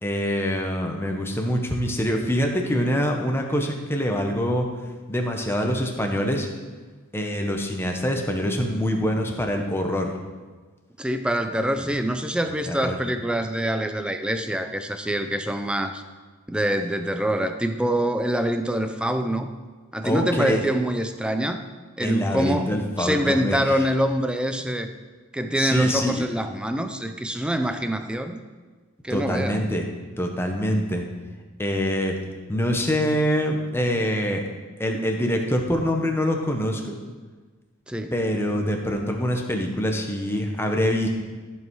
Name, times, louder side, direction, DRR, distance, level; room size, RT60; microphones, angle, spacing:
voice 1, 0.0-4.7 5.1-6.5 7.1-10.1 11.9-12.0 12.7-12.9 20.0-20.6 22.0-23.8 25.6-26.2 29.1-29.8 30.2-31.1 31.6-32.1 32.5-34.4 34.8-36.9 38.1-41.1, equal, 10° left, 2 dB, 0.9 m, -25 dB
voice 2, 11.0-16.0 16.5-19.5 19.9-21.6 22.0-24.9 25.3-28.4 29.0-29.6 37.9-38.1, right 1 dB, 5° right, 7 dB, 0.5 m, -25 dB
14.0 x 5.5 x 4.7 m, 1.4 s
head